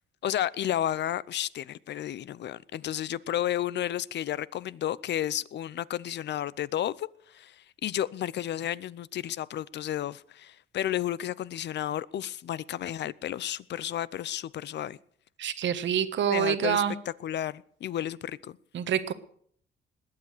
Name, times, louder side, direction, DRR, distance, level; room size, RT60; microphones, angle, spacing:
voice 1, 0.2-7.1 7.3-7.5 7.8-15.0 16.3-16.8 17.2-18.6, left 11 dB, 60° left, 0.7 m, -32 dB
voice 2, 15.4-16.9 18.7-19.1, right 9 dB, 70° right, 1.3 m, -26 dB
20.5 x 8.6 x 6.7 m
cardioid pair, 90°, 20 cm